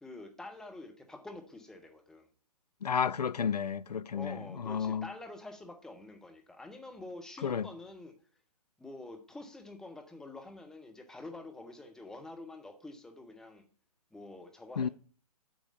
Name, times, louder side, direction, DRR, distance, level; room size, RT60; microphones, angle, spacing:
voice 1, 0.0-2.3 4.1-8.1 8.8-13.6 14.1-14.9, left 2 dB, 5° left, 0.9 m, -47 dB
voice 2, 2.8-4.4 4.6-5.0 7.4-7.7 14.8-14.9, left 7 dB, 80° left, 0.4 m, -31 dB
7.5 x 4.8 x 7.0 m
figure-of-eight pair, 130°, 20 cm